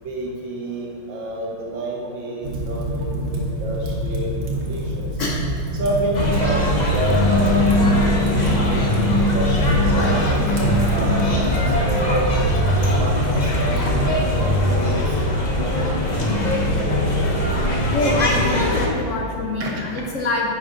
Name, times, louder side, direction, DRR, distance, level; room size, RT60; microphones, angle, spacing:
voice 1, 0.0-5.1 5.7-12.4 12.8-16.2 16.6-17.2 19.6-19.7, right 1 dB, 70° right, -1 dB, 1.9 m, -29 dB
Fire, 2.4-14.5, right 1 dB, 85° right, 2.1 m, -27 dB
sound 1, 6.1-18.9, left 1 dB, 40° left, 0.6 m, -20 dB
voice 2, 17.9-20.5, left 2 dB, 80° left, 0 dB, 0.6 m, -24 dB
9.9 x 6.0 x 3.9 m, 2.6 s
omnidirectional pair, 2.2 m